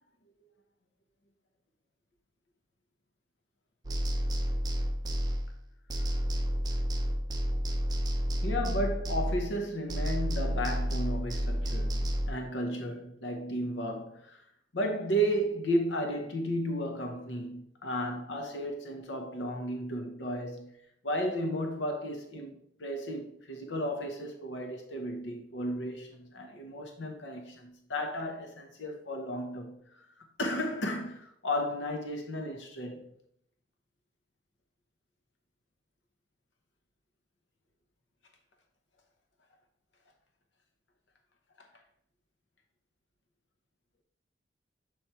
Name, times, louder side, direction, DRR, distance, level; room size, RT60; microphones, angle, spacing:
sound 1, 3.8-5.6 5.9-9.6 9.9-12.3, equal, 20° right, 0.5 m, -30 dB
voice 1, 8.4-14.5 14.7-20.7 21.0-30.1 30.4-33.1 41.6-41.7, equal, 75° left, 0.8 m, -34 dB
6.8 x 3.2 x 4.3 m
head